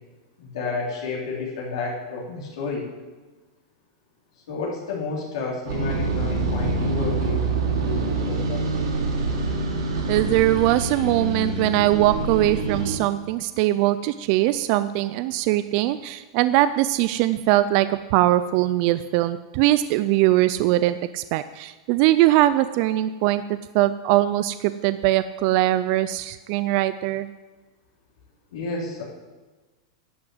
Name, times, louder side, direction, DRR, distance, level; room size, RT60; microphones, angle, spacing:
voice 1, 0.4-2.9 4.5-7.5 7.8-8.6 28.5-29.0, left 3 dB, 75° left, -4 dB, 3.5 m, -31 dB
sound 1, 5.6-13.0, right 3 dB, 80° right, 3.1 m, -26 dB
voice 2, 10.1-27.3, right 15 dB, 40° right, 13 dB, 0.3 m, -21 dB
11.0 x 6.1 x 7.7 m, 1.3 s
supercardioid pair, 165°, 3 cm